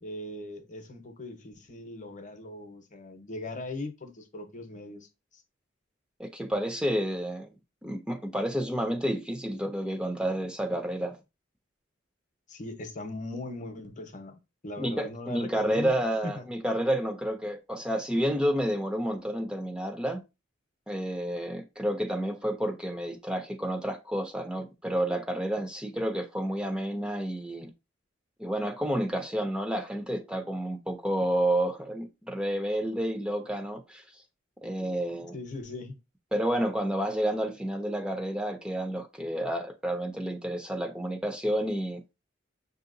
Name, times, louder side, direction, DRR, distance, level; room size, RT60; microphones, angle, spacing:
voice 1, 0.0-5.1 5.3-5.4 12.5-15.9 16.2-16.4 35.3-36.0, left 2 dB, 40° left, 0.7 m, -39 dB
voice 2, 6.2-7.5 7.8-11.2 14.8-20.2 20.9-27.7 28.4-34.2 34.6-35.3 36.3-42.0, right 1 dB, 5° right, 0.4 m, -30 dB
5.9 x 2.8 x 2.5 m
head